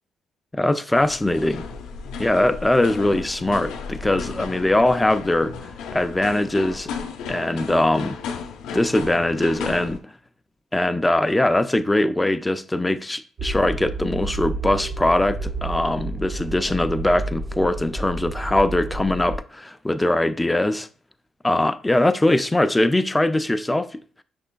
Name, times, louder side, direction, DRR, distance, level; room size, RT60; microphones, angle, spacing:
voice 1, 0.5-1.6 2.2-5.5 5.9-6.9 7.3-8.2 8.7-10.0 10.7-20.9 21.4-24.0, left 1 dB, 10° left, 0.3 m, -21 dB
sound 1, 0.9-10.0, left 5 dB, 90° left, 0.5 m, -34 dB
sound 2, 13.4-19.4, right 2 dB, 50° right, 0.5 m, -30 dB
6.1 x 3.2 x 2.2 m
cardioid pair, 90°, 0 cm